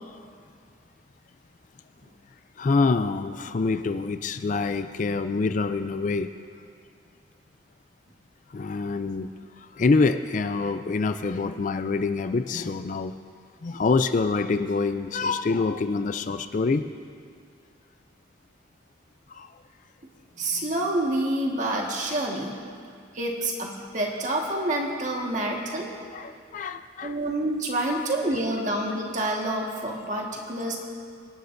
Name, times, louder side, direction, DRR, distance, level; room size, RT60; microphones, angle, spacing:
voice 1, 2.6-6.3 8.5-9.3 9.6-13.2 13.6-16.9 19.3-19.5 26.1-27.1 27.9-28.0, left 4 dB, 40° left, 10 dB, 0.3 m, -26 dB
voice 2, 20.4-22.5 23.1-25.9 27.0-30.8, right 1 dB, 40° right, -1 dB, 1.6 m, -28 dB
24.5 x 11.0 x 2.6 m, 2.2 s
head